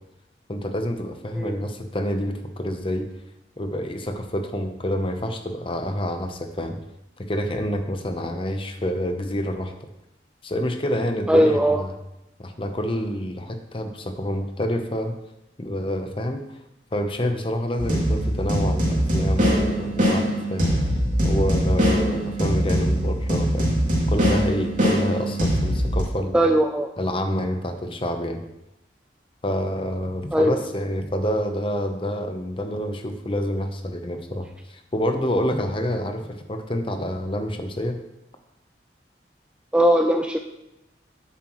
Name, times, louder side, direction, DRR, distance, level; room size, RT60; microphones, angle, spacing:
voice 1, 0.5-3.1 3.6-6.8 7.2-9.7 10.4-11.9 12.4-15.2 15.6-16.6 16.9-20.8 21.2-23.8 24.1-26.4 27.0-28.4 29.4-38.0, equal, 30° left, 6 dB, 0.8 m, -27 dB
voice 2, 11.3-11.8 26.3-26.9 30.3-30.5 39.7-40.4, equal, 5° right, 4 dB, 0.3 m, -19 dB
sound 1, 17.8-26.0, equal, 45° right, 2.5 m, -22 dB
9.7 x 8.0 x 3.1 m, 0.89 s
head